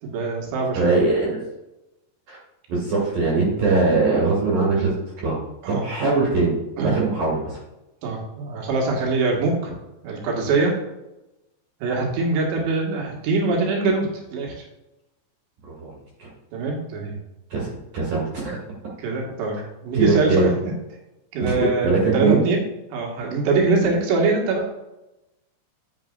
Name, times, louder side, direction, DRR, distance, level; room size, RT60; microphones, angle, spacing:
voice 1, 0.0-0.9 5.6-5.9 6.8-7.0 8.0-9.8 10.0-10.7 11.8-14.1 14.3-14.6 16.5-17.2 19.0-19.6 19.8-20.5 21.3-22.6 22.9-24.7, right 3 dB, 75° right, -1 dB, 3.8 m, -23 dB
voice 2, 0.7-1.4 2.3-2.4 2.7-5.4 5.7-6.5 6.8-7.6 15.6-15.9 16.2-16.3 17.5-18.6 19.9-20.5 21.4-22.4, right 3 dB, 55° right, -5 dB, 3.4 m, -21 dB
11.0 x 8.0 x 2.5 m, 0.96 s
omnidirectional pair, 5.2 m